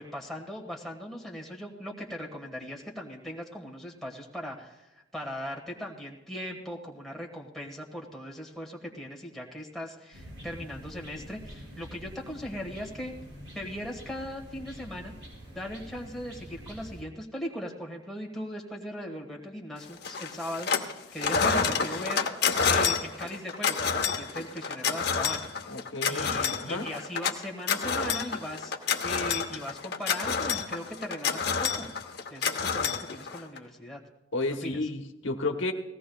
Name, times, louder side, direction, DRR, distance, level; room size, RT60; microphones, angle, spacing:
voice 1, 0.0-13.1 13.5-15.1 15.5-22.2 22.6-25.4 26.0-28.7 29.0-31.9 32.3-34.0 34.6-34.9, equal, ahead, -1 dB, 1.5 m, -39 dB
sound 1, 10.1-17.0, equal, 75° right, 5.8 m, -46 dB
sound 2, 20.0-20.9 21.2-33.6, left 6 dB, 55° left, 0.9 m, -28 dB
voice 2, 25.7-26.9 34.3-35.7, left 2 dB, 80° left, 4 dB, 1.1 m, -32 dB
19.0 x 16.0 x 2.3 m, 0.97 s
head